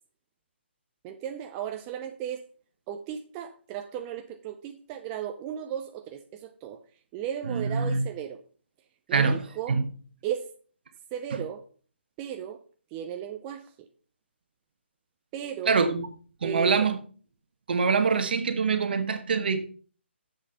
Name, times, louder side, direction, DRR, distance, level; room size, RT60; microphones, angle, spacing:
voice 1, 1.0-2.4 2.9-8.4 9.1-9.8 10.2-10.5 11.1-11.6 12.2-12.6 12.9-13.7 15.3-15.8 16.4-16.9, right 9 dB, 20° right, 0.5 m, -36 dB
voice 2, 7.5-8.0 9.1-9.4 9.7-9.8 15.7-16.1 16.4-17.0 17.7-19.6, right 5 dB, 55° right, 1.3 m, -24 dB
7.4 x 6.6 x 5.5 m
figure-of-eight pair, 140°, 6 cm